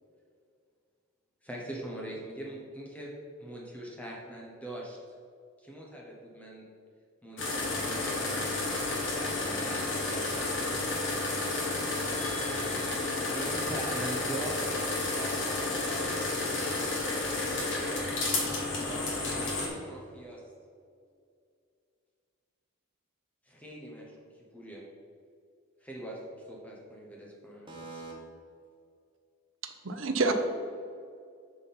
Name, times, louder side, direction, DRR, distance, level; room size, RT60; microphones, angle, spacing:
voice 1, 1.4-3.1 3.4-5.0 5.6-6.7 7.2-11.0 13.2-14.7 15.1-16.8 18.8-20.4 23.5-24.2 24.5-24.8 25.8-26.2 26.5-28.0, right 1 dB, 5° left, -3 dB, 0.9 m, -42 dB
sound 1, 7.4-19.7, left 2 dB, 60° left, 1.4 m, -31 dB
voice 2, 11.9-13.5 27.7-28.1, right 1 dB, 25° right, -2 dB, 1.2 m, -46 dB
voice 3, 29.6-30.3, right 3 dB, 70° right, 6 dB, 0.6 m, -28 dB
5.7 x 4.3 x 5.3 m, 2.3 s
head